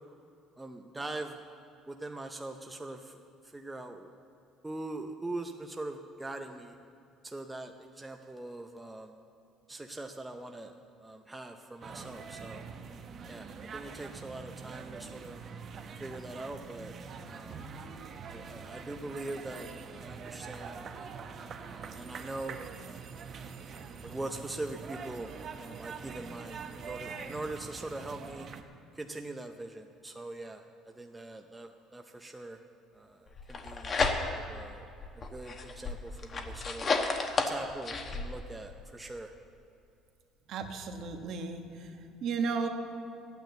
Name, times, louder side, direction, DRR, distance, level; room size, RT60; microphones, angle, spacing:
voice 1, 0.6-1.4 1.9-4.1 4.6-6.8 7.2-9.2 9.7-10.7 11.0-12.6 13.3-15.4 16.0-16.9 17.2-17.7 18.3-20.8 21.6-22.6 24.0-28.5 28.9-32.6 32.9-34.0 34.3-34.9 35.1-36.9 37.5-39.3, right 2 dB, 10° right, 4 dB, 0.6 m, -42 dB
sound 1, 11.8-28.6, right 5 dB, 40° right, 0.8 m, -44 dB
sound 2, 33.4-34.6 35.0-38.3, left 4 dB, 30° left, 1.0 m, -32 dB
voice 2, 40.5-41.9 42.2-42.7, right 5 dB, 55° right, 4 dB, 1.2 m, -34 dB
12.0 x 9.2 x 8.0 m, 2.5 s
cardioid pair, 145°, 0 cm